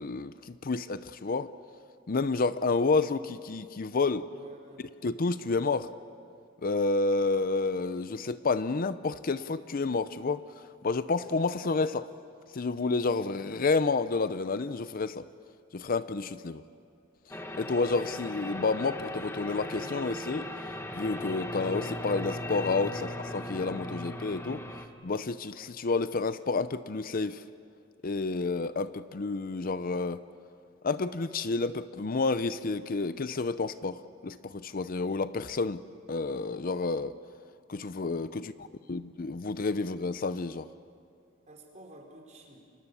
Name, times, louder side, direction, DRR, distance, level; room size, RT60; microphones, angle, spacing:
voice 1, 0.0-1.5 2.1-4.3 5.0-5.9 6.6-10.4 10.8-12.1 12.5-15.3 15.7-16.6 17.5-20.5 20.9-24.6 25.0-27.4 28.0-30.2 30.8-35.8 36.1-37.1 37.7-40.7, left 3 dB, 45° left, 14 dB, 0.6 m, -30 dB
voice 2, 4.3-4.9 38.3-39.0 41.5-42.6, right 1 dB, 35° right, 1 dB, 4.6 m, -51 dB
sound 1, 17.3-24.9, left 1 dB, 15° left, 1.5 m, -38 dB
30.0 x 25.5 x 7.0 m, 2.4 s
head